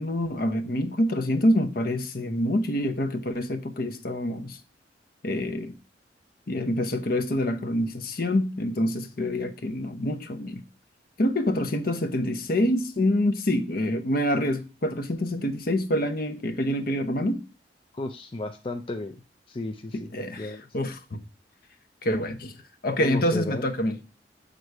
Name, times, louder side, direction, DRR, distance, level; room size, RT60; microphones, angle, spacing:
voice 1, 0.0-4.6 5.2-5.7 6.5-10.6 11.2-17.4 19.9-21.2 22.0-22.5 22.8-24.0, left 1 dB, 55° left, 0.8 m, -26 dB
voice 2, 17.9-19.2 19.5-20.1 20.4-20.6 23.0-23.7, left 2 dB, 30° left, 0.5 m, -33 dB
7.9 x 3.8 x 4.6 m
head